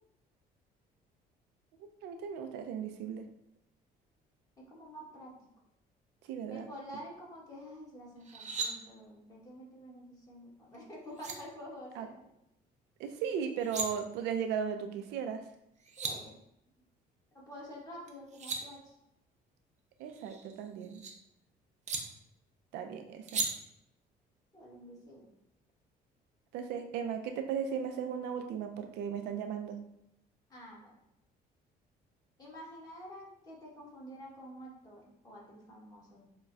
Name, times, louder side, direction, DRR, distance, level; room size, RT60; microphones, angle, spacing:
voice 1, 1.8-3.2 6.3-6.7 11.9-12.1 13.0-15.4 20.0-21.0 22.7-23.5 26.5-29.8, right 7 dB, 85° right, 6 dB, 0.5 m, -36 dB
voice 2, 4.6-5.3 6.5-12.3 16.0-16.4 17.3-18.9 24.5-25.3 30.5-31.0 32.4-36.2, equal, 20° left, -5 dB, 1.6 m, -49 dB
sound 1, 8.2-8.7 10.7-10.8 11.2-11.4 13.4-13.9 15.5-15.6 15.8-16.1 18.1-18.6 20.1-21.1 21.9-22.0 23.3-23.5, right 4 dB, 45° right, 0.7 m, -36 dB
6.7 x 2.3 x 2.6 m, 0.80 s
cardioid pair, 110°, 17 cm